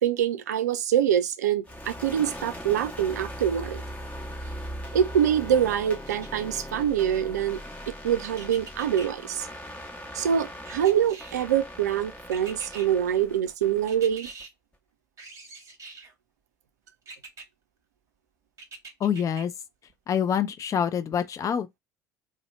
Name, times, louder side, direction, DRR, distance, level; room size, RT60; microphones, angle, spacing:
voice 1, 0.0-3.8 4.9-7.6 7.9-9.5 10.1-14.3, right 9 dB, 80° right, 0.4 m, -25 dB
sound 1, 1.6-14.4, equal, 15° left, 1.1 m, -40 dB
sound 2, 6.1-6.8 8.4-9.1 10.7-11.6 12.3-12.9 13.9-14.5 15.2-16.1 17.1-17.5 18.6-19.4 19.9-20.0, right 4 dB, 35° right, 1.1 m, -44 dB
voice 2, 19.0-19.5 20.1-21.8, left 8 dB, 35° left, 0.5 m, -26 dB
2.7 x 2.0 x 4.0 m
figure-of-eight pair, 60°, 9 cm